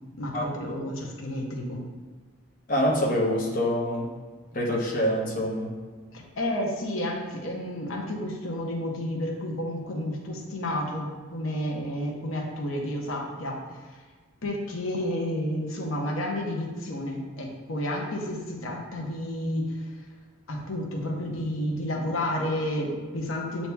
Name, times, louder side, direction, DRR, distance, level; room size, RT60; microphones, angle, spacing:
voice 1, 0.2-1.8 6.1-13.6 14.4-19.9 20.5-23.7, left 1 dB, 85° left, -1 dB, 0.8 m, -31 dB
voice 2, 2.7-4.1 4.5-5.7, equal, 40° left, -3 dB, 0.8 m, -25 dB
8.2 x 2.8 x 2.2 m, 1.5 s
head